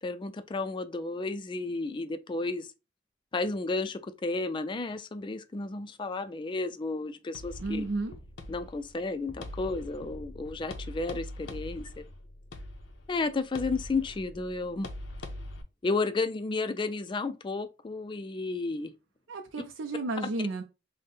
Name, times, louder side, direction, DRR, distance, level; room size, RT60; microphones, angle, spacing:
voice 1, 0.0-2.7 3.3-7.9 8.5-12.0 13.1-14.9 15.8-18.9, left 3 dB, 25° left, 0.3 m, -32 dB
sound 1, 7.3-15.6, left 1 dB, 90° left, 0.6 m, -43 dB
voice 2, 7.6-8.2 19.3-20.6, right 2 dB, 90° right, 0.5 m, -32 dB
3.6 x 2.1 x 3.9 m
head